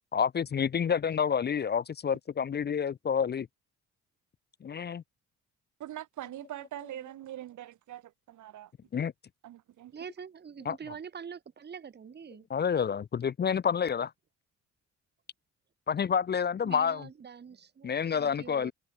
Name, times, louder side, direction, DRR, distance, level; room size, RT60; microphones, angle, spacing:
voice 1, 0.1-3.5 4.6-5.0 8.9-9.1 10.7-10.8 12.5-14.1 15.9-17.1 17.8-18.7, left 7 dB, 35° left, 0.6 m, -28 dB
voice 2, 5.8-8.7 9.4-9.9, right 13 dB, 75° right, 2.7 m, -43 dB
voice 3, 9.9-12.4 16.6-18.7, right 7 dB, 35° right, 1.3 m, -45 dB
cardioid pair, 90°, 30 cm